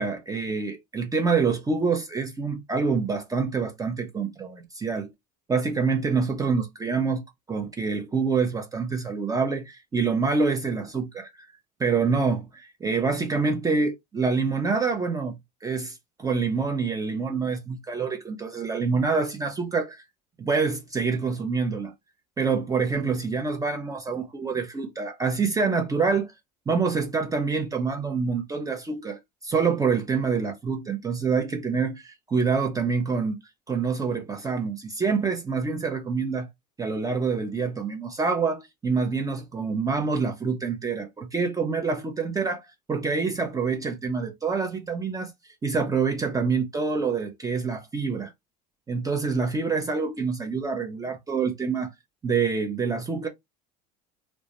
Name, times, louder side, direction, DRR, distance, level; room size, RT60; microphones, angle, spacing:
voice 1, 0.0-5.1 5.5-7.2 7.5-11.3 11.8-20.0 20.4-21.9 22.4-26.3 26.7-33.4 33.7-36.5 36.8-45.3 45.6-48.3 48.9-51.9 52.2-53.3, right 5 dB, 15° right, 0.5 m, -26 dB
2.1 x 2.1 x 2.8 m
hypercardioid pair, 85°, 20 cm